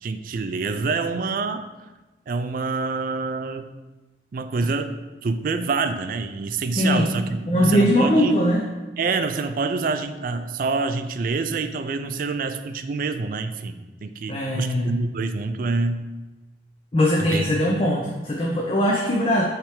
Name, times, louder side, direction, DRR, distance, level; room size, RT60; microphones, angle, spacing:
voice 1, 0.0-1.6 2.3-3.7 4.3-4.9 5.2-8.4 9.0-16.0 17.2-17.7, right 4 dB, 50° right, 10 dB, 0.4 m, -26 dB
voice 2, 6.7-7.1 7.5-8.7 14.3-14.9 16.9-19.4, equal, 30° left, -2 dB, 0.6 m, -20 dB
5.9 x 3.3 x 4.8 m, 1.2 s
head